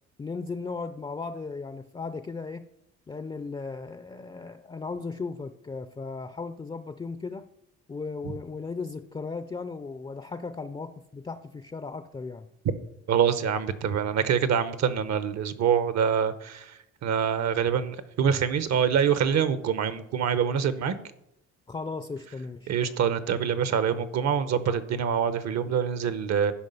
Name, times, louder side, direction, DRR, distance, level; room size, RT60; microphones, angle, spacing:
voice 1, 0.2-2.7 3.1-7.5 7.9-12.5 21.7-23.0, left 4 dB, 15° left, 11 dB, 0.4 m, -36 dB
voice 2, 13.1-16.6 17.0-20.9 22.7-26.5, right 7 dB, 65° right, 13 dB, 0.9 m, -25 dB
11.5 x 5.0 x 5.5 m, 0.81 s
cardioid pair, 90°, 30 cm